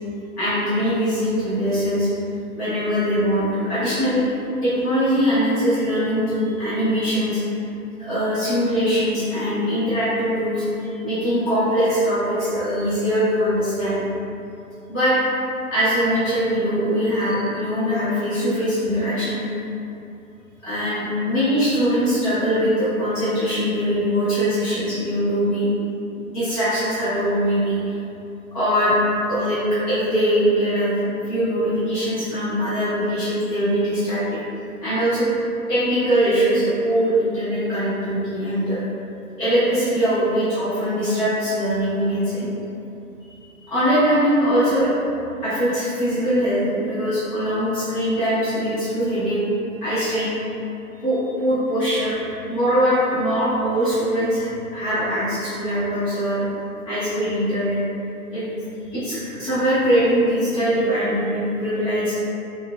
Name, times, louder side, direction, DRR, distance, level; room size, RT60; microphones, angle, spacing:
voice 1, 0.4-2.1 2.5-4.3 4.6-7.4 8.0-14.0 14.9-15.3 15.7-19.4 20.6-25.7 26.2-27.9 28.5-29.0 29.3-31.0 31.3-34.4 34.8-35.3 35.7-38.8 39.4-42.5 43.6-44.9 45.4-49.4 49.8-50.3 51.0-56.4 56.8-57.8 58.3-58.4 58.9-62.1, equal, 25° left, -14 dB, 1.0 m, -22 dB
4.4 x 2.5 x 2.2 m, 2.8 s
figure-of-eight pair, 135°, 45 cm